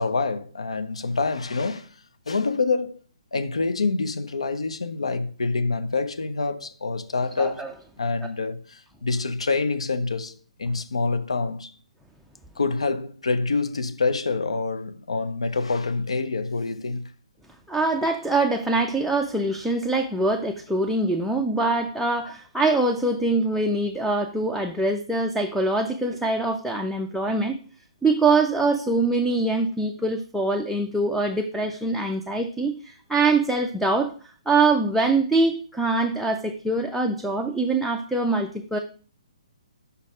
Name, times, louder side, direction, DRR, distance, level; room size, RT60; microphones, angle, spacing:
voice 1, 0.0-1.9 2.3-3.0 3.3-7.6 8.0-11.7 12.6-17.1, left 3 dB, 70° left, 0.7 m, -26 dB
voice 2, 7.4-7.7 17.7-27.6 28.0-38.8, right 3 dB, ahead, 0.4 m, -24 dB
5.5 x 4.1 x 4.7 m
figure-of-eight pair, 130°, 3 cm